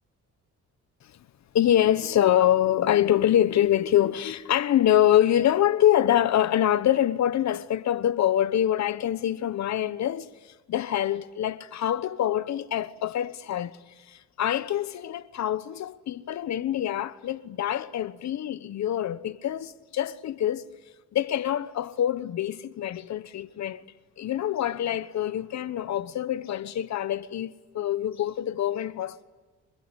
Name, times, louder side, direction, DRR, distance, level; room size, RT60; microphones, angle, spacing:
voice 1, 1.5-10.3 10.7-13.8 14.1-20.7 21.1-23.8 24.2-29.2, left 11 dB, 65° left, 1.2 m, -25 dB
26.5 x 21.0 x 9.9 m
cardioid pair, 90°, 30 cm